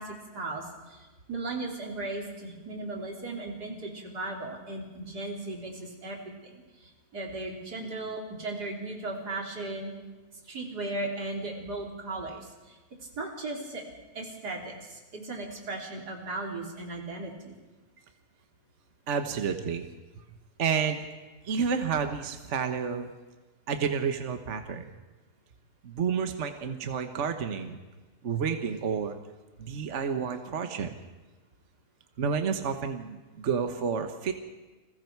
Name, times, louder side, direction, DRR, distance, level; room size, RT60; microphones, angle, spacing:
voice 1, 0.0-6.5 7.1-9.9 10.5-12.8 13.1-13.8 14.1-17.6, right 2 dB, 90° right, 0 dB, 3.9 m, -36 dB
voice 2, 19.1-19.9 20.6-21.0 21.4-23.1 23.7-24.8 25.8-27.8 28.2-29.2 29.6-30.9 32.2-34.4, right 6 dB, 50° right, 7 dB, 1.5 m, -30 dB
29.5 x 21.5 x 4.7 m, 1.2 s
omnidirectional pair, 1.7 m